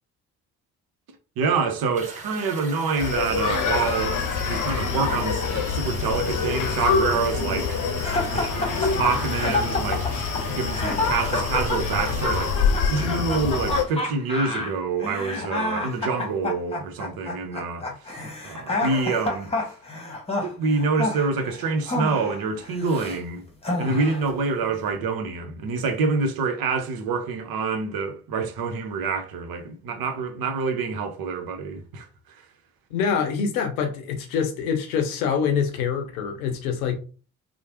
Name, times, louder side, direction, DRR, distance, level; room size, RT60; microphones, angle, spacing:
voice 1, 1.4-7.8 8.3-10.2 10.4-19.7 20.4-23.4 23.8-32.5, right 4 dB, 55° right, 0.8 m, -27 dB
sound 1, 1.9-12.5, right 2 dB, 15° right, 1.1 m, -40 dB
Screaming, 3.0-13.8, left 5 dB, 50° left, 0.7 m, -26 dB
sound 2, 8.0-23.2 23.6-24.3, left 2 dB, 15° left, 1.1 m, -29 dB
voice 2, 32.9-37.0, left 6 dB, 85° left, 0.7 m, -25 dB
3.1 x 2.0 x 3.0 m
hypercardioid pair, 45°, 41 cm